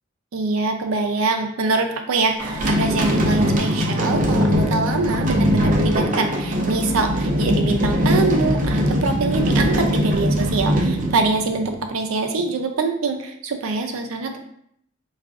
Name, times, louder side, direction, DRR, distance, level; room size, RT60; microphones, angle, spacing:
voice 1, 0.3-14.4, right 3 dB, 85° right, 4 dB, 0.5 m, -24 dB
sound 1, 2.4-11.8, equal, 40° right, 0.6 m, -21 dB
4.6 x 2.4 x 2.4 m, 0.71 s
head